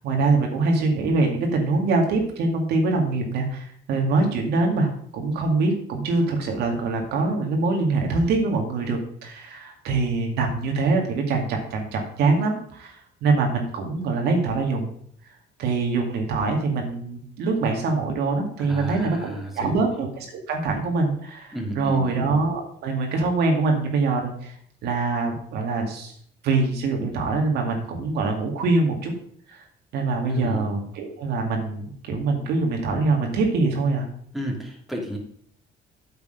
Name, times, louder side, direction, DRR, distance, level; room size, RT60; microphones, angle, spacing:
voice 1, 0.0-14.9 15.6-24.5 24.8-26.1 26.4-29.1 29.5-29.7 29.9-34.1, right 3 dB, 75° right, 2 dB, 2.3 m, -24 dB
voice 2, 18.6-19.8 21.5-22.2 30.3-30.7 34.3-35.2, equal, ahead, -1 dB, 2.4 m, -32 dB
8.5 x 7.0 x 5.2 m, 0.62 s
cardioid pair, 110°, 17 cm